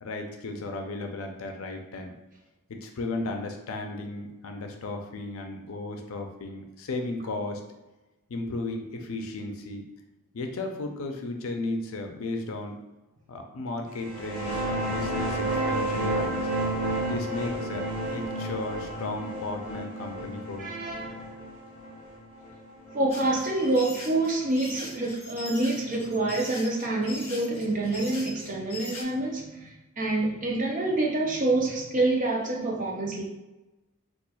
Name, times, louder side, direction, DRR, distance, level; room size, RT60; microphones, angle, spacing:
voice 1, 0.0-2.1 2.7-7.6 8.3-9.8 10.3-12.8 13.3-16.5 17.1-20.7, left 2 dB, 80° left, 4 dB, 0.5 m, -35 dB
sound 1, 14.0-23.3, right 1 dB, 85° right, 1.1 m, -31 dB
voice 2, 20.6-21.3 22.9-33.2, right 2 dB, 35° right, -1 dB, 0.5 m, -27 dB
sound 2, 23.1-29.0, left 2 dB, 30° left, 0.8 m, -41 dB
4.1 x 2.4 x 2.3 m, 1.1 s
head